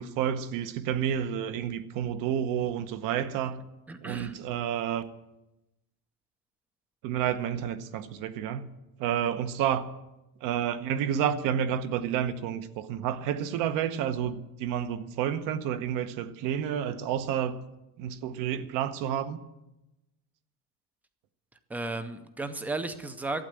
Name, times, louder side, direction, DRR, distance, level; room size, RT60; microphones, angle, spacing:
voice 1, 0.0-3.6 4.0-5.0 7.0-8.7 9.0-9.9 10.4-17.6 18.0-19.4, right 9 dB, 55° right, 1.0 m, -30 dB
voice 2, 3.9-4.4 21.7-23.4, right 2 dB, 5° right, 0.4 m, -34 dB
12.0 x 8.8 x 8.9 m
cardioid pair, 175°, 38 cm